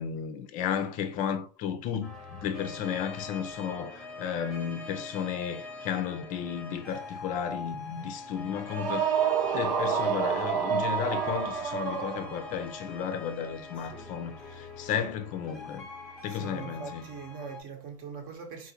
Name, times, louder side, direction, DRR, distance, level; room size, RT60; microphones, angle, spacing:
voice 1, 0.0-9.1 9.5-15.9 16.2-17.0, left 8 dB, 40° left, 0.5 m, -33 dB
sound 1, 2.0-17.6, left 3 dB, ahead, 0.8 m, -43 dB
sound 2, 8.7-12.7, right 7 dB, 80° right, 0.6 m, -28 dB
voice 2, 13.8-14.2 14.4-14.9 16.3-18.7, right 6 dB, 40° right, 0.9 m, -43 dB
3.8 x 2.5 x 2.8 m
supercardioid pair, 135°, 21 cm